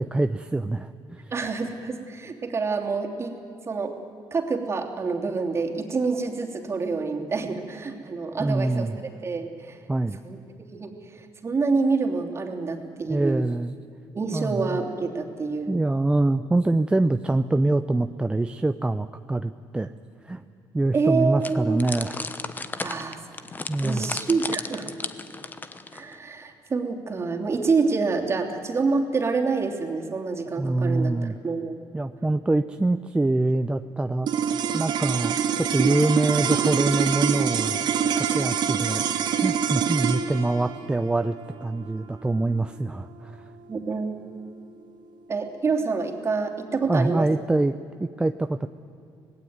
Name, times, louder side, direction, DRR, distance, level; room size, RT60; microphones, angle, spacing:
voice 1, 0.0-1.3 8.4-9.0 9.9-10.2 13.1-13.7 14.3-14.8 15.7-19.9 20.2-20.4 20.7-22.2 23.7-24.1 30.6-31.3 31.9-34.3 34.7-37.8 38.1-39.1 39.4-41.3 41.6-43.4 46.9-48.7, right 2 dB, 10° right, 9 dB, 0.6 m, -25 dB
voice 2, 1.3-3.4 3.6-3.9 4.3-8.9 9.2-9.8 10.2-10.4 10.7-13.4 14.1-15.8 20.9-21.8 22.8-23.4 23.8-24.9 25.9-31.8 43.7-44.1 45.3-47.3, right 4 dB, 30° right, 3 dB, 3.0 m, -27 dB
sound 1, 21.4-26.1, left 3 dB, 20° left, 1.2 m, -34 dB
sound 2, 34.2-44.7, right 8 dB, 65° right, 1.8 m, -26 dB
26.0 x 19.0 x 9.5 m, 2.6 s
cardioid pair, 115°, 9 cm